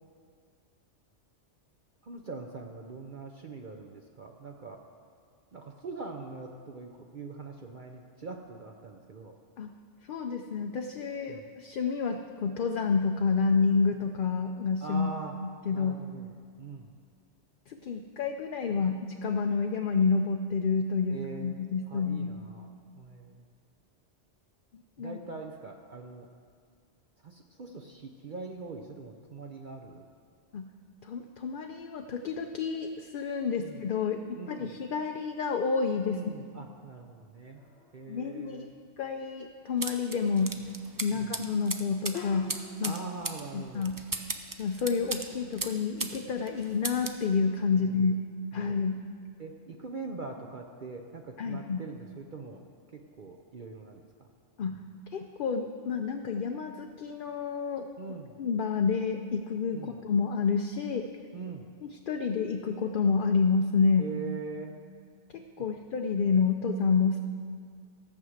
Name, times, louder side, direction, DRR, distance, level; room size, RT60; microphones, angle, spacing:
voice 1, 2.0-4.8 5.5-9.4 11.3-11.4 14.8-15.4 15.7-16.9 21.1-23.4 25.0-26.3 27.2-30.1 33.6-33.8 34.4-34.7 36.1-37.6 37.9-38.7 41.1-41.3 42.8-43.9 47.7-47.9 48.5-48.8 49.4-52.6 52.9-54.3 58.0-58.3 59.7-60.0 61.3-61.7 64.0-64.7 65.6-65.7, right 4 dB, 50° right, 2 dB, 0.8 m, -42 dB
voice 2, 10.1-15.1 15.7-16.0 17.7-22.3 25.0-25.2 30.5-30.7 31.0-34.2 34.5-36.2 38.1-38.6 39.0-40.6 41.0-43.0 43.5-44.0 44.6-48.2 48.5-49.0 51.4-51.8 54.6-54.8 55.1-57.9 58.4-61.1 61.8-64.1 65.3-67.2, left 5 dB, 55° left, 4 dB, 0.6 m, -29 dB
sound 1, 37.5-38.2 42.1-43.1, left 6 dB, 80° left, 1.6 m, -43 dB
sound 2, 39.8-46.2 46.5-47.2, right 3 dB, 25° right, 0.4 m, -37 dB
14.5 x 6.2 x 7.9 m, 2.1 s
omnidirectional pair, 1.2 m